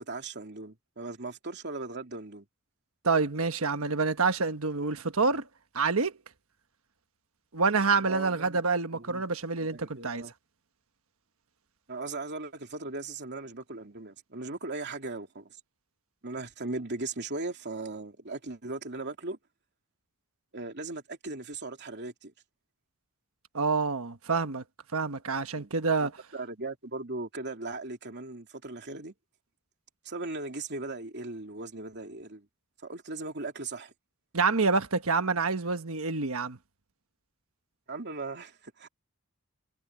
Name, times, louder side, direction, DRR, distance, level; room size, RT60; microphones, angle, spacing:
voice 1, 0.0-2.4 8.0-8.6 8.9-9.2 9.6-10.3 11.9-15.6 16.2-19.4 20.5-22.3 25.6-25.7 26.0-29.1 30.0-32.5 32.8-33.9 37.9-38.9, right 3 dB, 50° right, 3.0 m, -38 dB
voice 2, 3.0-5.4 5.7-6.1 7.5-10.2 23.5-24.6 24.9-26.1 34.3-36.6, right 4 dB, 70° right, 1.4 m, -27 dB
head